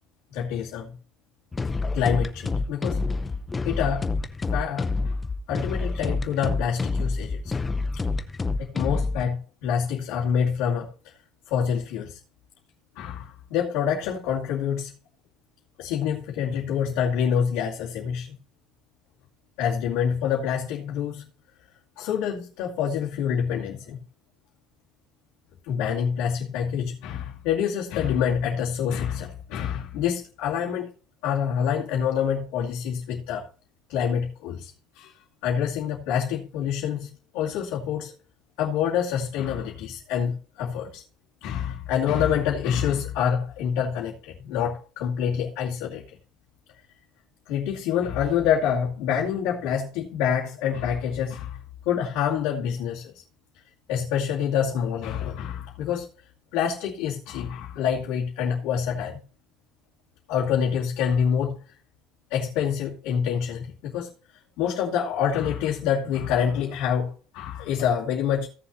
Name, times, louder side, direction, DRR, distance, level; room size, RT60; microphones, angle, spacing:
voice 1, 0.3-0.9 1.9-3.0 3.6-4.1 4.5-5.2 5.5-7.6 8.6-10.9 11.5-12.2 13.0-14.9 15.8-18.4 19.6-21.3 22.0-24.0 25.7-30.9 31.2-33.5 33.9-34.7 35.0-35.1 35.4-38.1 38.6-41.0 41.4-46.0 47.5-51.6 51.8-53.1 53.9-56.1 56.5-59.2 60.3-61.6 62.3-64.1 64.6-68.5, left 8 dB, 75° left, 2.5 m, -26 dB
sound 1, 1.5-9.2, left 3 dB, 15° left, 0.6 m, -27 dB
17.0 x 7.0 x 2.7 m
cardioid pair, 165°, 0 cm